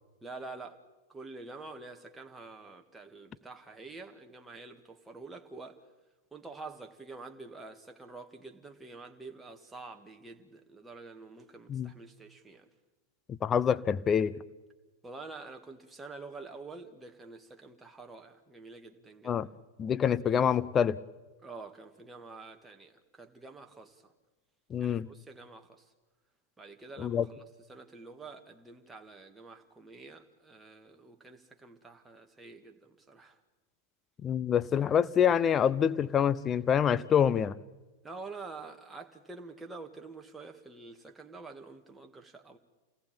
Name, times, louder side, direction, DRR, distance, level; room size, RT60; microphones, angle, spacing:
voice 1, 0.2-0.8 1.1-5.8 6.3-12.7 15.0-19.4 21.4-24.1 24.8-25.9 26.6-27.4 27.7-33.4 38.0-42.6, right 3 dB, 10° right, 1.9 m, -47 dB
voice 2, 13.3-14.4 19.2-19.5 19.8-21.0 24.7-25.1 27.0-27.3 34.2-37.6, left 8 dB, 25° left, 0.8 m, -26 dB
28.0 x 19.0 x 8.9 m
figure-of-eight pair, 90°, 0 cm